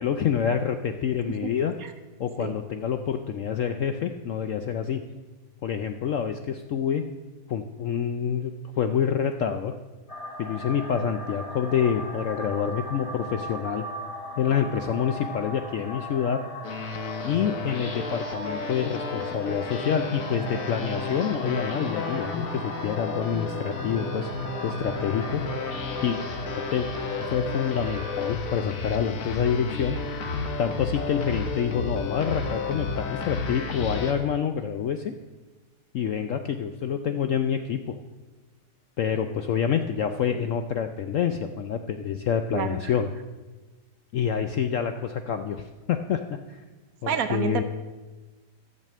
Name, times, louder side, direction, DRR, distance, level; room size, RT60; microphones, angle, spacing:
voice 1, 0.0-1.7 2.2-5.0 5.6-7.0 7.5-8.5 8.8-9.7 10.4-13.8 14.4-16.4 17.2-25.4 26.0-26.2 26.7-26.9 27.3-30.0 30.6-35.1 35.9-38.0 39.0-43.1 44.1-46.2 46.5-46.6 47.0-47.6, left 8 dB, 70° left, 8 dB, 0.7 m, -27 dB
sound 1, 10.1-28.3, left 1 dB, 25° left, 0.9 m, -37 dB
sound 2, 16.6-34.1, left 4 dB, 55° left, 1.3 m, -33 dB
voice 2, 47.1-47.6, right 8 dB, 65° right, 10 dB, 1.0 m, -28 dB
12.0 x 6.6 x 7.3 m, 1.2 s
omnidirectional pair, 1.9 m